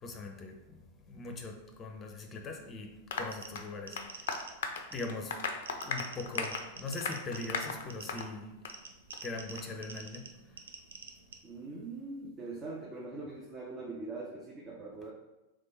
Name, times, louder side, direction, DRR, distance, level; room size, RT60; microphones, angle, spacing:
voice 1, 0.0-4.4 4.9-5.5 5.8-8.6 9.2-10.6, left 3 dB, 25° left, 4 dB, 0.7 m, -41 dB
Applause, 3.1-8.3 8.6-8.8 9.1-9.2 9.6-9.7, left 5 dB, 60° left, 0.4 m, -38 dB
sound 1, 3.3-11.4, right 5 dB, 70° right, 0.4 m, -48 dB
voice 2, 11.4-15.1, right 3 dB, 25° right, -4 dB, 0.8 m, -42 dB
3.7 x 3.2 x 4.0 m, 0.99 s
figure-of-eight pair, 90°, 0 cm